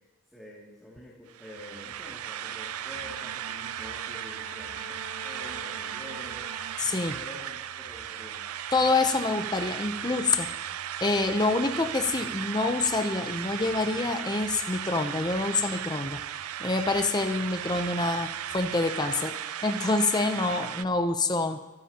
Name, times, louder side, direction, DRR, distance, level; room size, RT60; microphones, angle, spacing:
voice 1, 0.3-4.9 5.2-6.5 7.1-8.4, left 1 dB, ahead, -7 dB, 2.4 m, -47 dB
sound 1, 1.3-20.8, right 10 dB, 90° right, 0.5 m, -36 dB
sound 2, 1.6-19.1, left 2 dB, 70° left, 3.1 m, -57 dB
Bowed string instrument, 2.7-7.4, right 2 dB, 40° right, 2.3 m, -46 dB
voice 2, 6.8-7.2 8.7-10.5 11.0-16.2 16.6-21.6, left 3 dB, 20° left, 6 dB, 0.6 m, -27 dB
25.5 x 12.5 x 2.9 m, 1.0 s
head